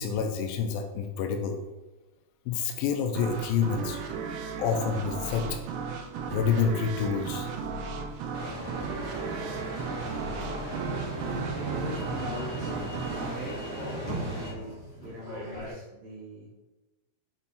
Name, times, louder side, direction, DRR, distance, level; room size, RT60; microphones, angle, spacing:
voice 1, 0.0-1.6 2.5-4.0 4.6-5.6 6.3-7.5, left 6 dB, 80° left, 4 dB, 2.3 m, -28 dB
sound 1, 3.1-14.6, right 5 dB, 80° right, 2.1 m, -36 dB
sound 2, 8.3-14.5, right 1 dB, 45° right, 1.4 m, -37 dB
sound 3, 10.7-15.7, right 1 dB, 50° left, 0.7 m, -39 dB
voice 2, 10.7-13.6 13.9-16.5, right 2 dB, 60° right, -6 dB, 2.5 m, -42 dB
7.4 x 3.5 x 4.1 m, 1.1 s
omnidirectional pair, 4.2 m